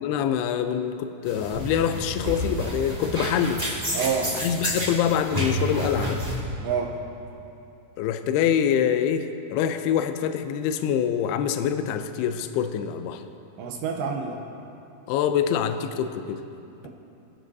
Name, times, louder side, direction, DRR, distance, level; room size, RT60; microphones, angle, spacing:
voice 1, 0.0-3.6 4.3-6.2 8.0-13.2 15.1-16.4, left 8 dB, 80° left, 9 dB, 2.3 m, -25 dB
sound 1, 1.2-6.3, equal, 10° right, 3.3 m, -30 dB
voice 2, 3.9-4.4 6.6-7.0 13.6-14.4, right 6 dB, 80° right, 2 dB, 3.0 m, -27 dB
27.5 x 11.0 x 2.8 m, 2.7 s
omnidirectional pair, 5.1 m